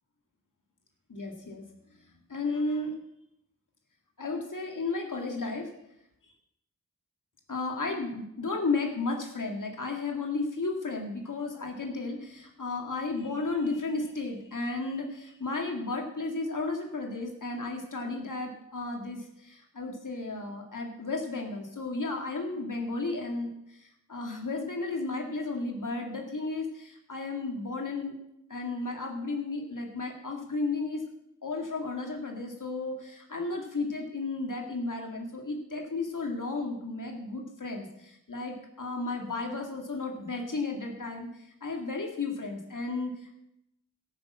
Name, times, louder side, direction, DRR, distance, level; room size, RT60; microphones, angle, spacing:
voice 1, 1.1-1.6 2.3-2.9 4.2-5.7 7.5-28.2 28.5-31.0 31.4-43.3, left 3 dB, 70° left, 1 dB, 2.2 m, -33 dB
14.0 x 6.6 x 7.3 m, 0.82 s
wide cardioid pair, 45°, 32 cm